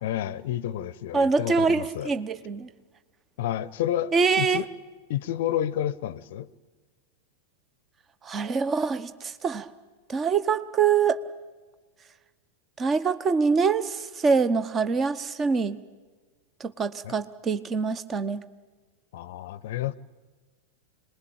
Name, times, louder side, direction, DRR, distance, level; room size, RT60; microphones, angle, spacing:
voice 1, 0.0-2.1 3.4-4.7 5.1-6.5 17.0-17.2 19.1-19.9, left 11 dB, 55° left, 0.7 m, -30 dB
voice 2, 1.1-2.7 4.1-4.6 8.2-9.7 10.1-11.2 12.8-15.8 16.6-18.4, right 5 dB, 25° right, 1.0 m, -24 dB
26.5 x 20.5 x 8.9 m
figure-of-eight pair, 90°, 0 cm